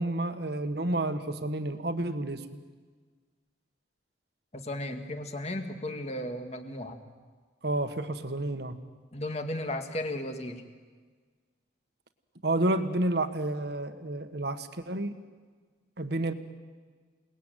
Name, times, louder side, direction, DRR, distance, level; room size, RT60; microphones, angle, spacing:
voice 1, 0.0-2.5 7.6-8.8 12.4-15.2 16.0-16.3, right 1 dB, 60° right, 8 dB, 1.6 m, -30 dB
voice 2, 4.5-7.0 9.1-10.6, left 1 dB, 35° left, 6 dB, 2.1 m, -35 dB
28.5 x 20.0 x 9.2 m, 1.5 s
head